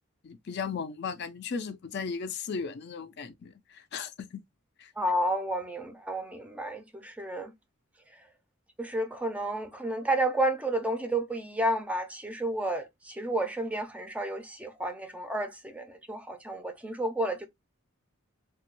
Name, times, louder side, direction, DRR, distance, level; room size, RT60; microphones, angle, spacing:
voice 1, 0.2-4.4 4.8-4.9, left 5 dB, 55° left, 0.4 m, -36 dB
voice 2, 5.0-7.5 8.8-17.5, right 1 dB, 5° right, 0.4 m, -31 dB
3.3 x 2.2 x 2.9 m
head